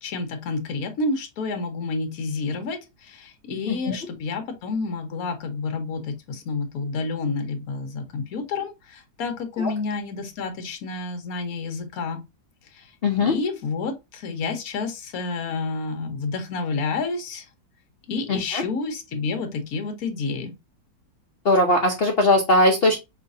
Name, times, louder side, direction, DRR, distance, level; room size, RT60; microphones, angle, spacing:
voice 1, 0.0-12.2 13.2-17.4 18.1-20.5, left 4 dB, 55° left, 1.3 m, -29 dB
voice 2, 13.0-13.3 18.3-18.6 21.4-23.0, left 2 dB, 75° left, 0.5 m, -20 dB
5.1 x 3.1 x 2.6 m
omnidirectional pair, 2.0 m